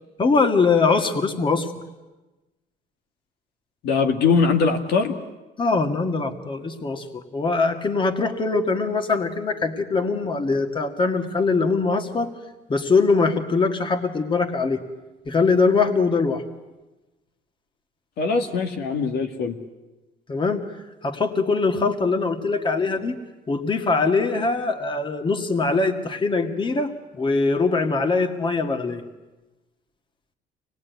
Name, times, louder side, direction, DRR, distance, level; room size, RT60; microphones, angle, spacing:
voice 1, 0.2-1.7 5.6-12.3 12.7-14.8 15.3-16.4 20.3-20.6 21.0-23.2 23.5-29.0, left 4 dB, 30° left, 6 dB, 2.0 m, -22 dB
voice 2, 3.8-5.2 18.2-19.6, left 5 dB, 70° left, 5 dB, 1.9 m, -21 dB
25.0 x 20.0 x 9.4 m, 1.1 s
cardioid pair, 110°, 17 cm